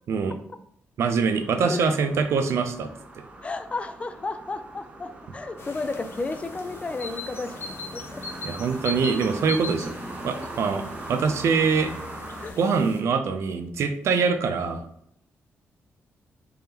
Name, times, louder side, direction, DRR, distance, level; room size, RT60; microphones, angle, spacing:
voice 1, 1.0-2.9 8.4-9.9 10.2-11.9 12.6-14.8, right 5 dB, 65° right, 8 dB, 0.5 m, -24 dB
sound 1, 1.3-12.5, right 2 dB, 25° right, 0.6 m, -41 dB
voice 2, 3.4-8.2 12.4-12.6, left 3 dB, 25° left, 10 dB, 0.3 m, -33 dB
sound 2, 5.6-13.0, left 3 dB, 50° left, 0.7 m, -39 dB
3.5 x 3.4 x 2.8 m, 0.71 s
cardioid pair, 105°, 5 cm